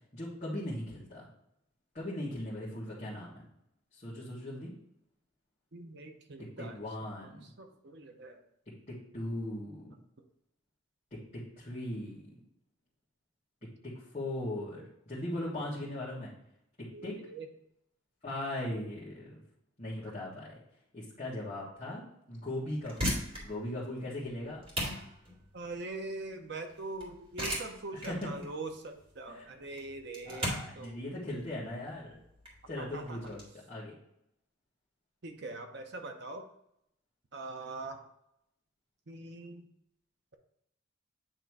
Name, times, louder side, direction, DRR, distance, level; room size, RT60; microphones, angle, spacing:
voice 1, 0.1-1.3 1.9-3.4 3.9-4.7 6.6-7.4 8.9-9.9 11.3-12.2 13.8-16.3 17.0-17.1 18.2-19.4 19.8-20.6 20.9-24.6 28.1-28.3 29.3-29.5 30.2-32.2 32.6-33.4 33.7-33.9, left 1 dB, 35° left, -9 dB, 1.6 m, -39 dB
voice 2, 5.7-6.8 7.6-8.4 16.9-17.5 25.5-31.0 32.8-33.2 35.2-36.4 37.3-38.0 39.1-39.7, right 2 dB, 55° right, 5 dB, 0.7 m, -42 dB
sound 1, 22.7-33.4, equal, 30° right, 2.1 m, -39 dB
8.9 x 3.1 x 4.6 m, 0.77 s
head